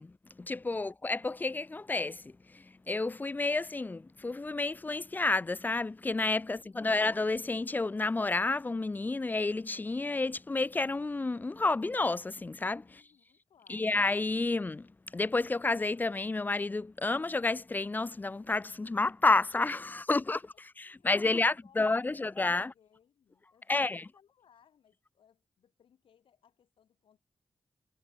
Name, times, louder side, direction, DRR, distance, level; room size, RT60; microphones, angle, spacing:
voice 1, 0.0-12.9 13.7-20.4 20.8-22.7 23.7-24.0, left 3 dB, 20° left, 0.3 m, -30 dB
voice 2, 6.5-7.0 12.8-13.9 20.3-27.2, left 8 dB, 90° left, 5.2 m, -66 dB
cardioid pair, 70°, 9 cm